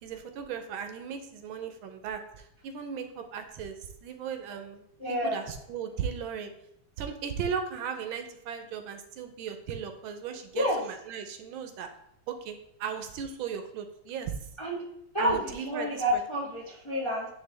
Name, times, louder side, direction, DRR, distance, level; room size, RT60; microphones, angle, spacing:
voice 1, 0.0-6.5 7.0-11.9 12.3-14.4 15.2-16.2, right 7 dB, 80° right, 7 dB, 1.5 m, -37 dB
voice 2, 5.0-5.4 10.5-10.8 14.6-14.8 15.1-15.4 15.6-17.3, equal, 25° left, -4 dB, 0.6 m, -29 dB
9.6 x 3.3 x 3.3 m, 0.78 s
omnidirectional pair, 2.3 m